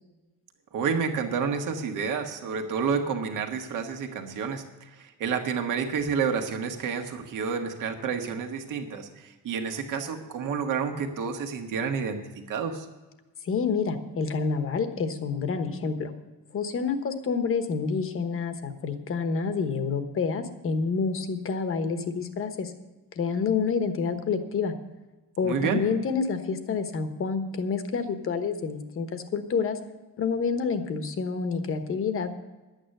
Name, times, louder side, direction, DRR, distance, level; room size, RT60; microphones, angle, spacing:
voice 1, 0.7-12.9 25.4-25.8, right 6 dB, 60° right, 4 dB, 1.6 m, -29 dB
voice 2, 13.4-16.1 16.5-22.7 23.1-24.7 25.4-29.8 30.2-32.4, left 5 dB, 35° left, 8 dB, 1.1 m, -28 dB
11.5 x 9.1 x 6.6 m, 1.2 s
cardioid pair, 165°, 36 cm